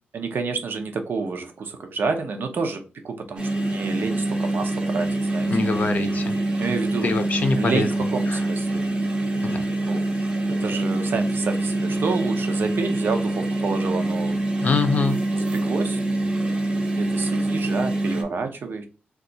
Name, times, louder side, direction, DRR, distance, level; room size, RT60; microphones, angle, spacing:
voice 1, 0.1-5.7 6.6-7.1 7.6-8.9 9.9-10.1 10.5-14.4 15.3-16.0 17.0-18.9, right 4 dB, 65° right, 6 dB, 0.7 m, -29 dB
sound 1, 3.4-18.2, right 2 dB, 25° right, 0.7 m, -25 dB
voice 2, 5.4-6.3 7.0-7.9 8.3-8.4 9.4-9.6 14.6-15.2, left 4 dB, 45° left, 7 dB, 0.5 m, -24 dB
2.9 x 2.3 x 3.9 m, 0.34 s
wide cardioid pair, 145°, 4 cm